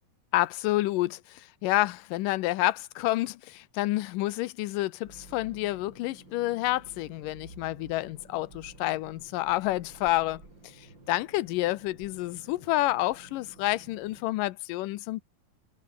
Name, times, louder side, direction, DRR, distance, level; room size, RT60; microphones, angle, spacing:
voice 1, 0.3-15.2, left 17 dB, 75° left, 2.2 m, -29 dB
sound 1, 5.0-14.2, right 2 dB, 30° right, 8.1 m, -52 dB
omnidirectional pair, 4.1 m